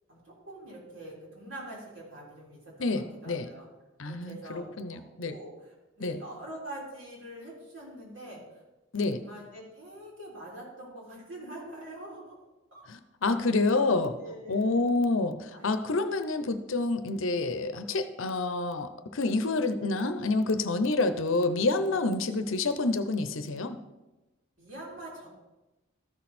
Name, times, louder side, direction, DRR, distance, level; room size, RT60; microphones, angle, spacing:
voice 1, 0.1-3.7 4.0-8.6 8.9-12.4 12.7-12.9 14.2-14.8 15.5-15.7 20.1-21.0 24.6-25.3, right 1 dB, 70° right, -4 dB, 3.8 m, -45 dB
voice 2, 2.8-3.5 4.0-5.3 6.0-6.2 8.9-9.2 12.9-14.2 14.5-23.8, left 3 dB, 70° left, 10 dB, 0.7 m, -28 dB
13.5 x 6.3 x 4.3 m, 1.0 s
head